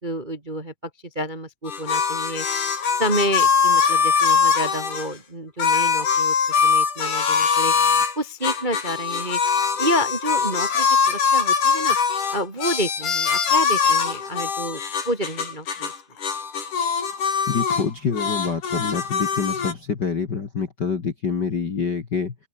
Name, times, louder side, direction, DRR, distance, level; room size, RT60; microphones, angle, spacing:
voice 1, 0.0-0.7 1.1-2.4 2.9-6.3 6.6-7.7 8.1-9.4 9.8-12.0 12.3-15.9, equal, 20° right, 1.6 m, -29 dB
sound 1, 1.7-5.1 5.6-8.1 8.4-16.0 16.2-17.9 18.1-19.7, left 6 dB, 60° left, 5.3 m, -22 dB
voice 2, 17.5-22.3, left 5 dB, 40° left, 1.8 m, -26 dB
omnidirectional pair, 4.2 m